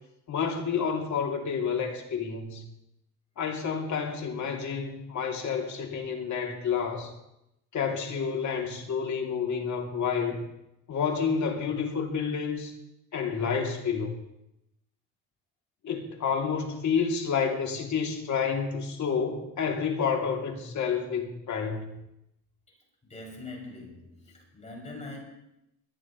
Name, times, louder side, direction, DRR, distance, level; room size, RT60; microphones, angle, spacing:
voice 1, 0.3-2.6 3.4-7.1 7.7-10.4 10.9-12.7 13.1-14.2 15.8-21.9, left 6 dB, 55° left, 2.7 m, -29 dB
voice 2, 23.1-25.2, left 2 dB, 20° left, 6.3 m, -42 dB
21.0 x 15.5 x 3.1 m
cardioid pair, 125°, 35 cm